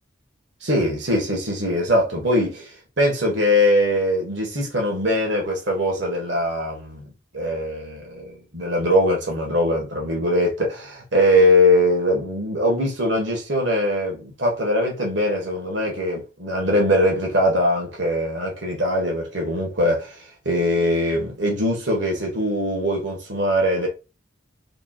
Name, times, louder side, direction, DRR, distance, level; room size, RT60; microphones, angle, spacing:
voice 1, 0.6-7.0 7.3-20.2 20.4-23.9, left 1 dB, 65° right, 1.5 m, -21 dB
5.0 x 3.1 x 2.4 m
head